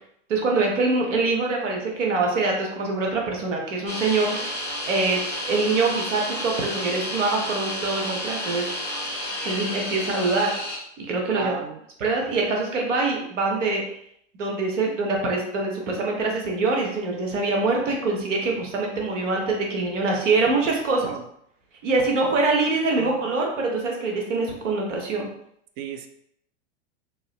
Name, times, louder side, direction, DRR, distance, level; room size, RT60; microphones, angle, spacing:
voice 1, 0.3-8.7 9.4-10.5 11.0-11.5 12.0-13.8 14.4-21.1 21.8-25.3, right 3 dB, 80° right, 0 dB, 1.1 m, -24 dB
sound 1, 3.9-10.8, left 1 dB, 10° left, 1.4 m, -31 dB
voice 2, 11.3-11.8 21.0-21.3 23.0-23.1 25.8-26.1, right 8 dB, 40° right, 7 dB, 0.4 m, -33 dB
2.9 x 2.8 x 3.0 m, 0.72 s
hypercardioid pair, 110°, 37 cm